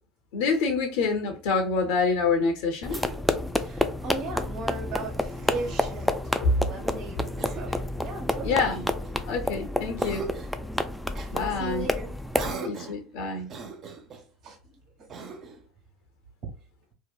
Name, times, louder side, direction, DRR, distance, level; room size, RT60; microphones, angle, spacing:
voice 1, 0.3-3.1 6.4-6.5 8.4-8.9 9.3-10.3 11.3-11.9 12.6-13.5, left 4 dB, 75° left, 0.6 m, -26 dB
sound 1, 2.8-12.5, left 1 dB, ahead, 0.3 m, -30 dB
Cough, 2.9-3.6 5.0-6.2 7.4-7.9 8.7-9.5 10.0-10.6 11.1-11.3 12.3-13.1 13.5-14.3 15.1-15.7, right 4 dB, 45° right, 0.6 m, -41 dB
voice 2, 3.6-8.7 11.4-12.7 13.4-13.5 14.4-14.6, right 2 dB, 60° right, 1.2 m, -37 dB
2.7 x 2.0 x 2.3 m
hypercardioid pair, 85°, 0 cm